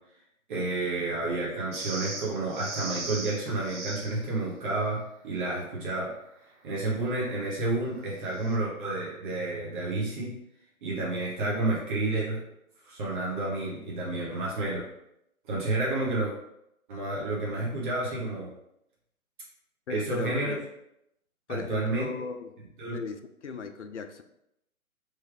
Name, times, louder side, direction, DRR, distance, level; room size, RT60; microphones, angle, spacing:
voice 1, 0.5-6.1 6.6-10.3 10.8-12.4 12.8-14.9 15.5-16.3 16.9-18.5 19.9-20.5 21.5-22.3 22.8-23.0, right 2 dB, 35° right, -5 dB, 1.3 m, -30 dB
sound 1, 1.7-4.2 8.3-8.6, right 3 dB, 55° right, 1.0 m, -38 dB
voice 2, 19.9-20.6 21.5-22.5 22.9-24.2, left 5 dB, 55° left, 8 dB, 0.5 m, -37 dB
3.3 x 3.1 x 3.4 m, 0.80 s
figure-of-eight pair, 130°, 43 cm